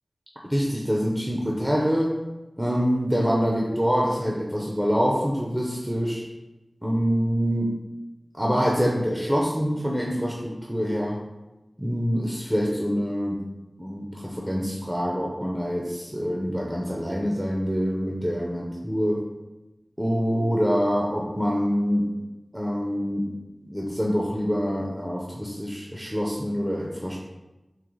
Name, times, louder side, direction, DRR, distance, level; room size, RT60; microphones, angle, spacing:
voice 1, 0.5-2.2 2.6-6.2 6.8-7.7 8.3-11.2 11.8-13.5 13.8-19.3 20.0-22.1 22.5-23.3 23.6-27.2, equal, 10° right, -3 dB, 0.6 m, -25 dB
3.8 x 2.9 x 3.1 m, 1.0 s
wide cardioid pair, 40°, 0 cm